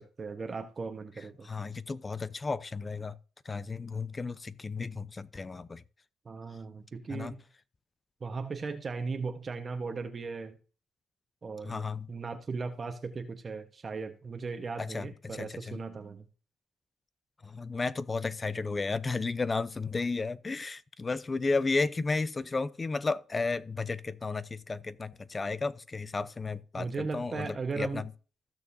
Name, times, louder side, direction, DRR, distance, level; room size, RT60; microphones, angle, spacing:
voice 1, 0.0-1.5 6.2-7.4 8.2-10.6 11.4-16.3 26.8-28.1, right 4 dB, 40° right, 1.2 m, -37 dB
voice 2, 1.4-3.2 3.4-5.8 7.1-7.3 11.6-12.1 14.8-15.8 17.4-28.1, left 3 dB, 30° left, 0.7 m, -33 dB
15.5 x 6.7 x 2.7 m
cardioid pair, 80°, 0 cm